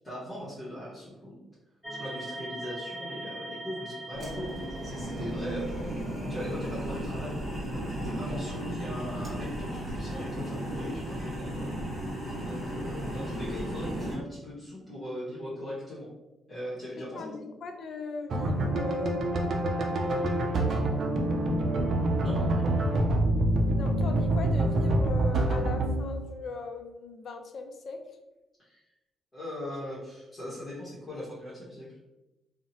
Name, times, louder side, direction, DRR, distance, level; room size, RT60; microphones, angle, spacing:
voice 1, 0.0-1.4 1.9-5.9 6.3-7.4 7.7-11.7 12.4-16.1 16.5-17.4 22.2-22.7 28.6-28.8 29.3-31.9, equal, 25° left, -9 dB, 1.0 m, -40 dB
sound 1, 1.8-6.1, right 1 dB, ahead, 0.5 m, -41 dB
sound 2, 4.1-14.2, equal, 30° right, 1.1 m, -35 dB
voice 2, 17.1-19.2 20.7-21.0 23.7-28.0, left 3 dB, 55° left, 5 dB, 0.4 m, -39 dB
sound 3, 18.3-26.4, right 1 dB, 55° right, 0.4 m, -26 dB
2.7 x 2.0 x 2.7 m, 1.0 s
cardioid pair, 90°, 0 cm